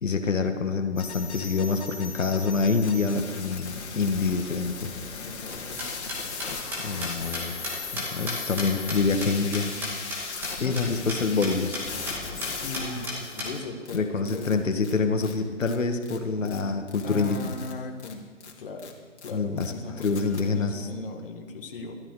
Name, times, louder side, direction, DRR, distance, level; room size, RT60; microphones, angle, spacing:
voice 1, 0.0-4.9 6.8-9.7 10.6-11.7 13.9-17.5 19.3-19.7 20.0-20.9, left 4 dB, 85° left, 6 dB, 1.7 m, -26 dB
sound 1, 1.0-13.6 13.8-14.0 14.2-14.5 14.8-14.9 15.2-15.3 15.6-15.8 16.0-16.2 16.4-16.6 16.9-17.7 18.0-18.1 18.4-18.5 18.8-18.9 19.2-19.3 19.6-19.7 20.0-20.4, left 5 dB, 60° left, 2.7 m, -38 dB
voice 2, 5.2-5.9 12.6-14.6 16.4-16.8 17.0-18.3 18.6-19.0 19.2-22.0, left 3 dB, 45° left, 2 dB, 1.9 m, -38 dB
sound 2, 5.5-10.2 10.4-10.5 10.8-10.9 11.1-11.2 11.4-11.8 12.1-12.2 12.4-13.5, left 1 dB, 5° right, 2.0 m, -33 dB
15.0 x 12.5 x 4.8 m, 1.5 s
hypercardioid pair, 165°, 37 cm